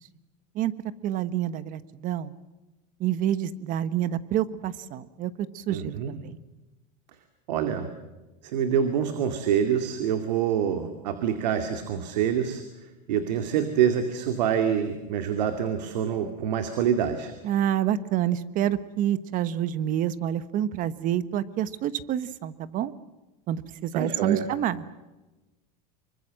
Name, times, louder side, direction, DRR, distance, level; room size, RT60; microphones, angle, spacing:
voice 1, 1.0-2.3 3.0-6.4 17.4-22.9 23.5-24.8, right 11 dB, 40° right, 15 dB, 1.2 m, -28 dB
voice 2, 5.7-6.1 7.5-7.9 8.4-12.6 13.1-17.3 23.9-24.4, right 8 dB, 85° right, 7 dB, 2.4 m, -26 dB
26.0 x 23.5 x 7.6 m, 1.1 s
supercardioid pair, 140°, 21 cm